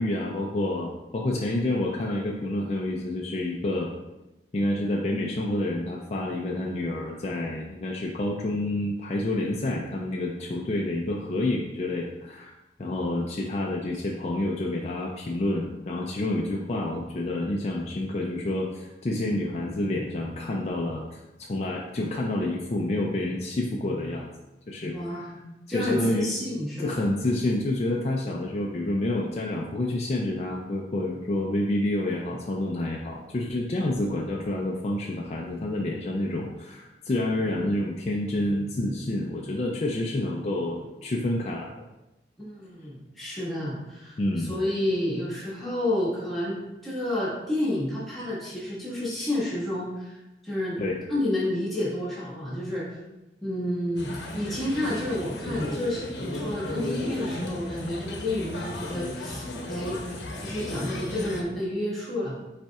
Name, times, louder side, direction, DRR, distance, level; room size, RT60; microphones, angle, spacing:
voice 1, 0.0-3.9 4.5-12.5 12.8-24.3 24.7-25.3 25.7-26.3 26.8-41.7 44.2-44.5 50.8-51.0, left 1 dB, 35° left, -1 dB, 0.4 m, -28 dB
voice 2, 24.9-25.4 25.7-26.9 42.4-50.2 50.4-50.8 51.1-53.0 53.4-60.0 60.4-62.3, left 1 dB, ahead, -9 dB, 1.5 m, -30 dB
sound 1, 54.0-61.4, left 1 dB, 90° left, 0.8 m, -35 dB
5.4 x 4.2 x 2.3 m, 1.0 s
head